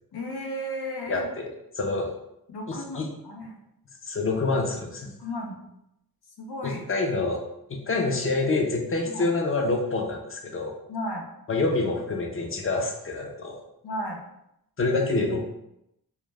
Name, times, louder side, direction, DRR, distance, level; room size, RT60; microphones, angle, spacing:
voice 1, 0.1-1.3 2.5-3.6 4.9-5.7 6.4-6.8 9.1-9.3 10.9-11.3 13.8-14.2, left 1 dB, 85° left, 1 dB, 0.6 m, -34 dB
voice 2, 1.1-1.5 1.8-2.1 2.7-3.1 4.0-5.1 6.6-7.4 7.7-10.8 11.5-13.6 14.8-15.4, left 3 dB, 35° left, 1 dB, 0.5 m, -27 dB
2.3 x 2.0 x 3.2 m, 0.82 s
wide cardioid pair, 115°, 38 cm